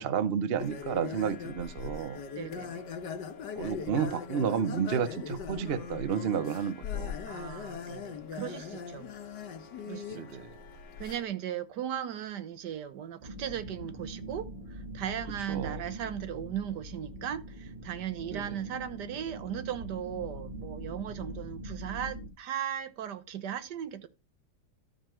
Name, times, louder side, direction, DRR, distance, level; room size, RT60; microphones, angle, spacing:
voice 1, 0.0-2.2 3.6-7.2 10.1-10.5 15.5-15.8 18.3-18.6, right 7 dB, 50° right, 0.8 m, -31 dB
sound 1, 0.6-11.2, left 6 dB, 80° left, 1.6 m, -40 dB
voice 2, 2.4-2.8 7.2-9.1 9.9-10.4 11.0-24.1, right 10 dB, 75° right, 1.5 m, -37 dB
sound 2, 13.2-22.3, right 1 dB, 30° right, 1.5 m, -43 dB
12.5 x 4.6 x 4.5 m
omnidirectional pair, 1.9 m